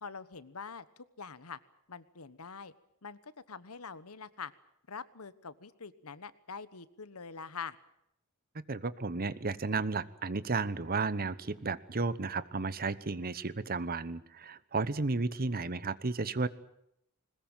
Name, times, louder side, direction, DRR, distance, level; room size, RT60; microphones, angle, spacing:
voice 1, 0.0-1.6 1.9-2.7 3.0-4.5 4.9-7.8, left 5 dB, 80° left, 16 dB, 1.2 m, -44 dB
voice 2, 8.5-16.5, right 3 dB, 45° right, 17 dB, 1.0 m, -33 dB
21.0 x 20.5 x 9.0 m, 0.76 s
head